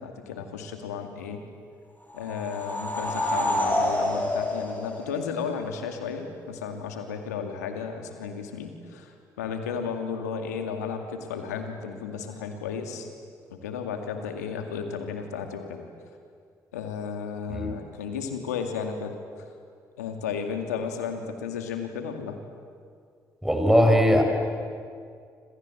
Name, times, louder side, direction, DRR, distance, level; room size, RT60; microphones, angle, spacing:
voice 1, 0.0-1.4 2.1-13.1 13.5-15.9 16.7-19.2 20.0-22.4, left 6 dB, 85° left, 5 dB, 2.2 m, -33 dB
sound 1, 2.1-5.7, left 1 dB, 20° left, 7.9 m, -28 dB
voice 2, 23.4-24.2, equal, 5° right, 3 dB, 7.0 m, -19 dB
28.0 x 27.0 x 7.9 m, 2.2 s
hypercardioid pair, 40°, 9 cm